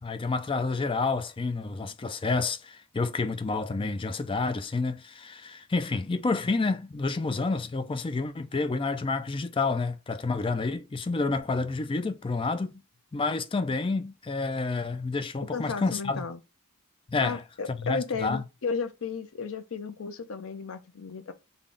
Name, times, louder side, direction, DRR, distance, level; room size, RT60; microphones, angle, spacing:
voice 1, 0.0-12.8 13.1-16.3 17.1-17.4 17.7-18.4, left 3 dB, 25° left, 0.4 m, -29 dB
voice 2, 15.5-16.4 17.2-21.3, left 4 dB, 65° left, 0.6 m, -34 dB
3.7 x 2.3 x 3.8 m
head